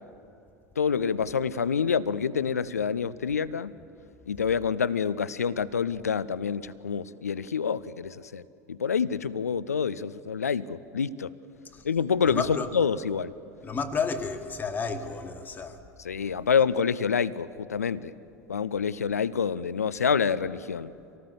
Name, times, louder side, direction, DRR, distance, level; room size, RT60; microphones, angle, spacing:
voice 1, 0.8-3.7 4.3-11.3 11.8-13.3 16.0-18.1 18.5-20.9, left 6 dB, 80° left, 0.6 m, -27 dB
voice 2, 12.3-12.7 13.6-15.8, left 5 dB, 20° left, 1.7 m, -31 dB
25.0 x 18.5 x 7.1 m
figure-of-eight pair, 75°, 8 cm